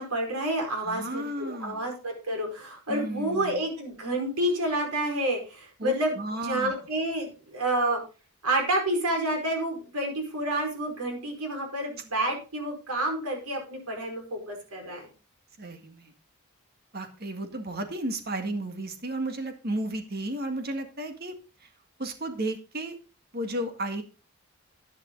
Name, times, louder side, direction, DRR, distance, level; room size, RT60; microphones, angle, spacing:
voice 1, 0.0-8.0 8.4-15.1, right 1 dB, 90° right, 3 dB, 5.0 m, -29 dB
voice 2, 0.8-1.8 2.9-3.6 5.8-6.7 15.6-16.1 16.9-21.3 21.6-21.7 22.0-23.0 23.3-24.0, right 1 dB, 45° right, 6 dB, 1.9 m, -33 dB
11.0 x 10.5 x 3.9 m, 0.33 s
head